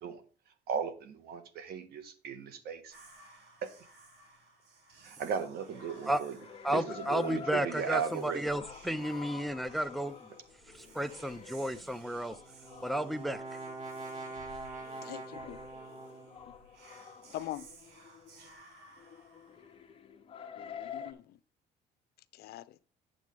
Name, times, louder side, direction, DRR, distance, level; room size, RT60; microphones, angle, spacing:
voice 1, 0.7-2.9 3.6-3.7 5.0-6.4 6.7-8.5 18.4-18.5, right 7 dB, 70° right, 1.7 m, -36 dB
Whispering, 2.9-20.0, right 2 dB, 85° right, 3.4 m, -58 dB
sound 1, 5.7-21.1, left 7 dB, 30° left, 1.2 m, -49 dB
voice 2, 6.6-10.1 10.7-12.4 12.8-13.6, right 1 dB, ahead, 0.6 m, -33 dB
Brass instrument, 12.3-16.5, right 3 dB, 50° right, 1.9 m, -44 dB
voice 3, 15.0-15.6 17.3-17.7 20.5-21.4 22.3-22.8, left 13 dB, 70° left, 0.7 m, -43 dB
9.2 x 7.4 x 3.6 m
cardioid pair, 120°, 17 cm